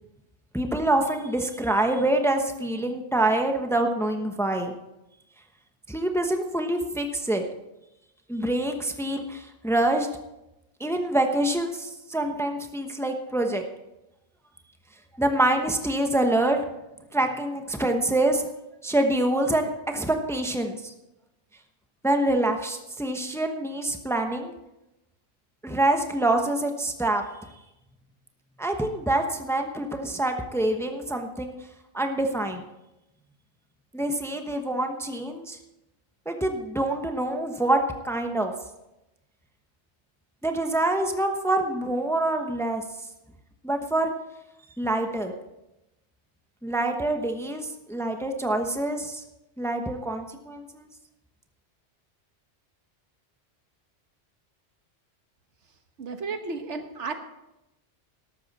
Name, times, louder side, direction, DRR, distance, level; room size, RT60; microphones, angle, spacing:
voice 1, 0.5-4.7 5.9-7.4 8.3-10.1 10.8-13.6 15.2-16.6 17.1-18.5 18.8-20.9 22.0-24.5 25.6-27.2 27.5-27.6 28.6-31.5 31.9-32.6 33.9-35.6 36.3-37.8 38.0-38.5 40.4-42.8 43.6-44.1 44.8-45.3 46.6-49.2 49.6-50.9, right 1 dB, 5° left, 5 dB, 0.9 m, -26 dB
voice 2, 56.0-57.1, right 4 dB, 85° right, 6 dB, 1.5 m, -33 dB
14.0 x 12.0 x 4.2 m, 0.93 s
omnidirectional pair, 1.2 m